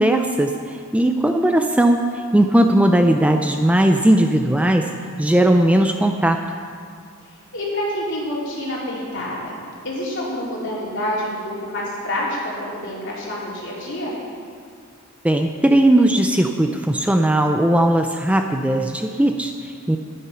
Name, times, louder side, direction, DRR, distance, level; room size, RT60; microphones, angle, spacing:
voice 1, 0.0-4.9 5.2-6.4 15.2-20.0, right 1 dB, 5° right, 5 dB, 0.4 m, -18 dB
voice 2, 7.3-9.6 9.8-14.2, left 1 dB, 60° left, -5 dB, 3.4 m, -27 dB
11.5 x 10.0 x 5.6 m, 2.2 s
head